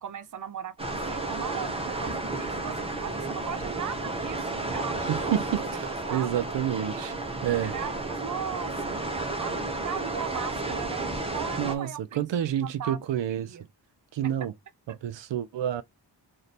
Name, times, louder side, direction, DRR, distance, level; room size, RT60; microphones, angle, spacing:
voice 1, 0.0-5.3 5.8-6.4 6.8-7.0 7.4-9.0 9.4-13.7 14.2-14.3, right 8 dB, 45° right, 0.6 m, -38 dB
sound 1, 0.8-11.7, right 2 dB, 15° right, 0.8 m, -32 dB
voice 2, 5.1-7.1 7.4-7.7 11.6-13.6 14.1-14.5 14.9-15.8, right 10 dB, 90° right, 0.6 m, -29 dB
3.2 x 2.7 x 4.1 m
wide cardioid pair, 140°, 42 cm